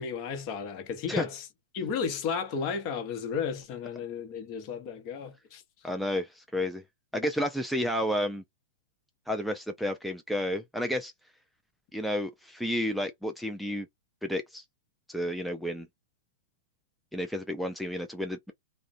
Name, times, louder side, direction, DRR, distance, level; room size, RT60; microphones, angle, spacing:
voice 1, 0.0-1.5 1.7-5.6, left 6 dB, 45° left, 0.8 m, -33 dB
voice 2, 5.8-6.8 7.1-8.4 9.3-11.1 11.9-13.9 14.2-14.6 15.1-15.9 17.1-18.5, equal, ahead, 0.4 m, -31 dB
2.4 x 2.1 x 2.5 m
hypercardioid pair, 115°, 0 cm